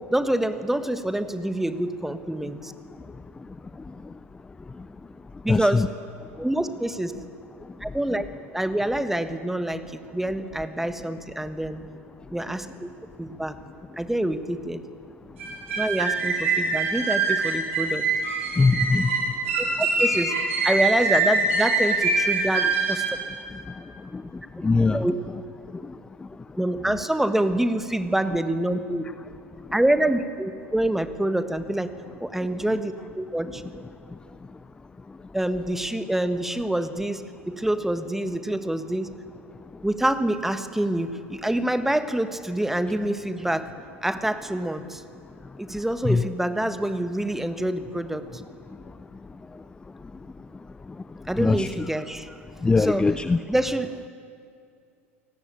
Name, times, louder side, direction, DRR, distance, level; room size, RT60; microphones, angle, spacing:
voice 1, 0.1-2.7 5.4-5.9 6.4-7.1 7.8-8.3 8.5-11.8 12.3-12.9 13.2-13.6 14.0-14.8 15.8-18.0 19.6-20.4 20.6-23.0 24.9-25.1 26.6-29.0 29.7-31.9 32.2-33.6 35.3-39.1 39.8-43.7 44.0-45.0 45.6-48.2 51.3-52.3 52.8-53.0 53.5-54.1, right 1 dB, 5° right, 10 dB, 1.5 m, -26 dB
voice 2, 5.5-5.9 18.6-19.1 24.1-24.2 24.6-25.1 46.0-46.2 51.4-51.7 52.6-53.4, left 3 dB, 10° left, 15 dB, 0.6 m, -21 dB
sound 1, 15.4-23.2, right 3 dB, 65° right, 5.9 m, -24 dB
29.0 x 18.5 x 8.5 m, 2.4 s
figure-of-eight pair, 80°, 7 cm